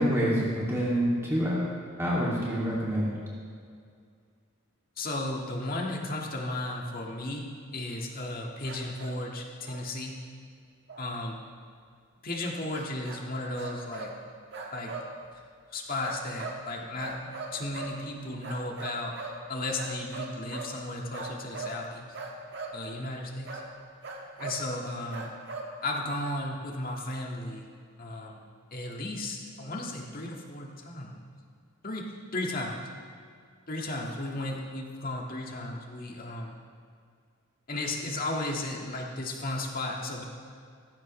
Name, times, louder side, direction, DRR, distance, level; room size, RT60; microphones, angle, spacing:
voice 1, 0.0-1.7 2.0-3.1, equal, 15° right, -6 dB, 2.5 m, -27 dB
voice 2, 5.0-10.2 11.0-11.4 12.2-14.1 14.7-14.9 15.7-19.2 19.5-22.2 22.7-23.6 24.4-25.3 25.8-27.7 28.0-28.4 28.7-31.2 31.8-32.9 33.7-36.6 37.7-40.2, left 2 dB, 40° left, 0 dB, 1.8 m, -35 dB
sound 1, 8.6-9.2 9.6-9.9 10.9-11.1 12.7-13.2 13.6-14.1 14.5-15.1 16.0-16.6 17.0-18.0 18.4-19.4 19.7-20.8 21.1-21.8 22.1-22.8 23.4-23.7 24.0-24.6 25.1-25.7, right 4 dB, 50° right, 1.6 m, -39 dB
17.5 x 15.5 x 3.2 m, 2.2 s
head